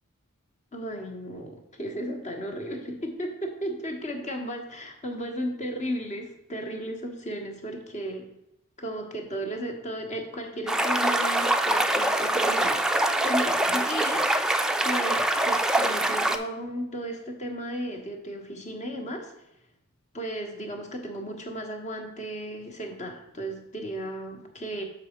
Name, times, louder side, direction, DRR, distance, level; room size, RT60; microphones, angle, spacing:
voice 1, 0.7-8.2 8.8-14.5 14.8-19.3 20.1-24.8, right 1 dB, 35° left, 3 dB, 1.2 m, -34 dB
sound 1, 10.7-16.4, right 1 dB, 5° right, 0.4 m, -24 dB
7.0 x 5.4 x 4.4 m, 0.82 s
head